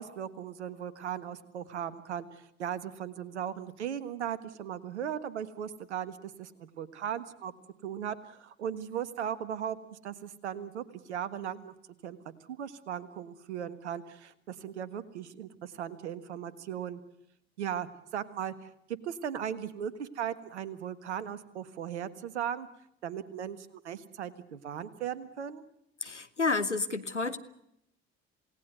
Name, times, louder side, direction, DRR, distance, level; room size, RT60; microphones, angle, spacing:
voice 1, 0.0-7.5 7.8-11.7 12.0-12.2 12.5-17.0 17.6-22.7 23.0-25.6, right 9 dB, 75° right, 15 dB, 1.5 m, -37 dB
voice 2, 26.0-27.4, left 3 dB, 90° left, 10 dB, 1.0 m, -30 dB
28.0 x 18.0 x 8.1 m, 0.77 s
figure-of-eight pair, 55°, 34 cm